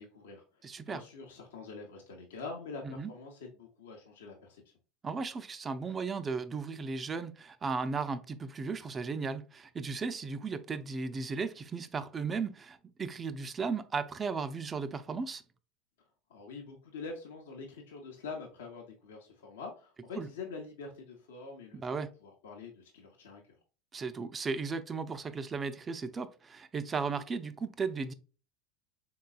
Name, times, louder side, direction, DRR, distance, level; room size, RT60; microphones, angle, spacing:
voice 1, 0.0-0.6 0.9-4.6 16.3-21.8 22.2-23.4, left 4 dB, 70° left, 0.7 m, -45 dB
voice 2, 0.6-1.0 2.9-3.1 5.0-15.4 20.2-20.3 21.8-22.1 23.9-28.1, right 4 dB, 25° right, 0.4 m, -35 dB
3.8 x 3.8 x 2.3 m
figure-of-eight pair, 75°, 0 cm